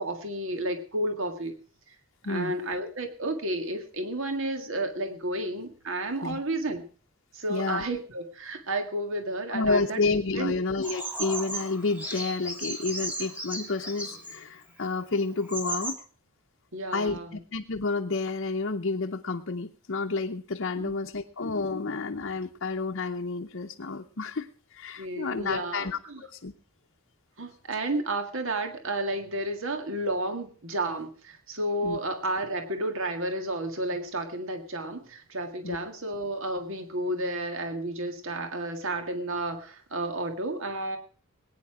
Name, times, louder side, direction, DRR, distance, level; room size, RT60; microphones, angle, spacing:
voice 1, 0.0-1.5 1.9-2.0 2.3-6.8 7.3-10.0 10.3-10.5 16.7-17.3 20.8-20.9 25.0-26.2 27.4-41.0, right 1 dB, 60° right, 6 dB, 1.8 m, -31 dB
voice 2, 2.2-2.6 6.2-6.4 7.5-7.8 9.5-16.0 16.9-26.5 31.8-32.0 35.6-35.8, left 3 dB, 55° left, 2 dB, 0.8 m, -30 dB
Bird vocalization bird call bird song, 10.8-14.4 15.0-15.1 15.4-15.9, right 2 dB, 10° right, 2.4 m, -35 dB
20.0 x 9.7 x 4.8 m, 0.41 s
head